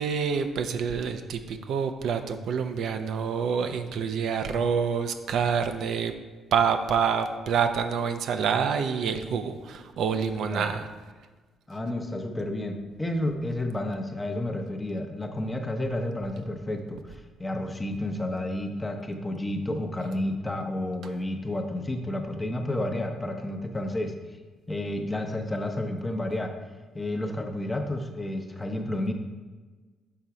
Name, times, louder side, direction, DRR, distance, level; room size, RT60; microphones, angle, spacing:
voice 1, 0.0-6.1 6.5-10.9, right 6 dB, 75° right, 7 dB, 0.5 m, -27 dB
voice 2, 11.7-24.1 24.7-26.6 26.9-29.1, left 1 dB, 15° left, 5 dB, 0.7 m, -31 dB
5.8 x 3.9 x 4.7 m, 1.3 s
cardioid pair, 90°, 0 cm